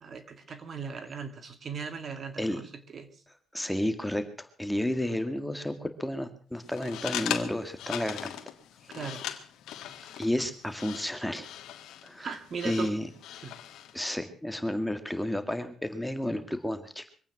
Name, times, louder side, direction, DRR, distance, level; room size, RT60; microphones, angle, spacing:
voice 1, 0.0-3.1 8.9-9.3 12.2-12.9 13.4-13.6, right 5 dB, 45° right, 9 dB, 2.0 m, -38 dB
voice 2, 3.5-8.3 8.9-9.0 10.2-11.5 12.0-12.3 12.6-13.1 13.9-17.1, left 1 dB, 5° left, 8 dB, 1.9 m, -31 dB
sound 1, 6.6-14.0, left 11 dB, 85° left, 1.7 m, -39 dB
24.0 x 9.0 x 6.0 m, 0.43 s
cardioid pair, 90°, 0 cm